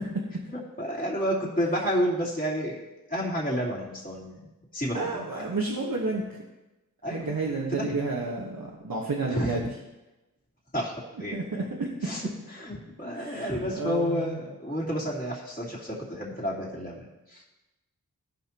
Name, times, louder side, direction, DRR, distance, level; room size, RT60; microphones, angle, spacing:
voice 1, 0.5-5.2 7.0-7.4 7.7-8.0 9.3-9.7 10.7-10.9 11.2-11.4 12.0-17.4, equal, 25° left, -7 dB, 2.8 m, -30 dB
voice 2, 4.9-6.2 7.1-9.6 11.3-11.9 13.1-14.4, right 3 dB, 85° right, -3 dB, 1.3 m, -31 dB
16.5 x 5.8 x 3.0 m, 1.0 s
wide cardioid pair, 45°, 34 cm